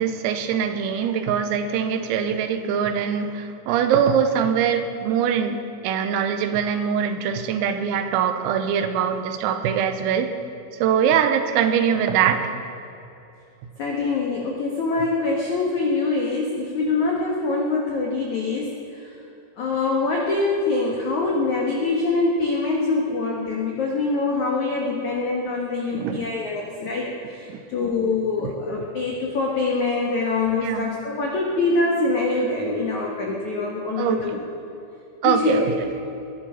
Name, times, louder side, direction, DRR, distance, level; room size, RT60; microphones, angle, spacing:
voice 1, 0.0-10.3 10.8-12.5 25.9-26.2 27.5-27.6 28.4-28.5 30.6-30.9 34.0-34.2 35.2-35.7, right 8 dB, 90° right, 8 dB, 3.7 m, -22 dB
voice 2, 13.8-18.7 19.0-19.1 19.6-27.4 27.7-34.4 35.2-35.8, left 3 dB, 80° left, -1 dB, 1.7 m, -24 dB
20.5 x 11.0 x 5.7 m, 2.8 s
omnidirectional pair, 5.9 m